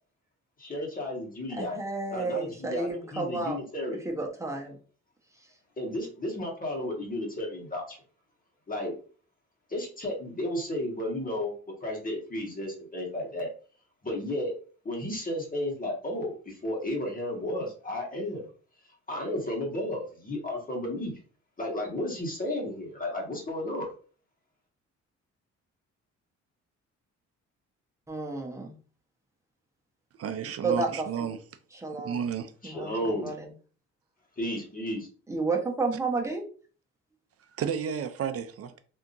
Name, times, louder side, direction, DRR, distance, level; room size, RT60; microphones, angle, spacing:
voice 1, 0.6-1.8 2.1-4.0 5.8-8.0 8.7-8.9 9.7-11.5 11.8-13.5 14.0-14.5 14.8-18.5 19.1-21.1 21.6-23.9 32.6-33.3 34.4-35.1, left 1 dB, 30° left, 1.6 m, -33 dB
voice 2, 1.5-3.6 4.0-4.8 5.4-5.5 28.1-28.8 30.6-31.3 31.7-32.2 32.6-33.5 35.3-36.4, right 3 dB, 10° right, 1.1 m, -31 dB
voice 3, 30.2-31.4 32.0-32.5 37.5-38.8, right 7 dB, 50° right, 0.5 m, -32 dB
3.4 x 2.8 x 2.6 m
cardioid pair, 90°, 30 cm